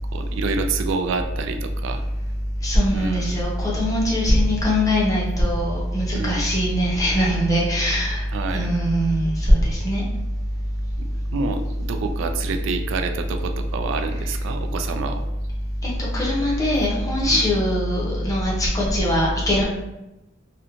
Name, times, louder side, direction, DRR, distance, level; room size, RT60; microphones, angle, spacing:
voice 1, 0.1-2.1 2.9-3.4 6.1-6.5 8.3-8.7 11.0-15.2 17.2-17.4, right 4 dB, 65° right, 6 dB, 0.3 m, -28 dB
voice 2, 2.6-8.2 8.5-10.0 16.1-19.6, equal, 15° left, -5 dB, 0.7 m, -21 dB
2.9 x 2.1 x 2.4 m, 0.96 s
head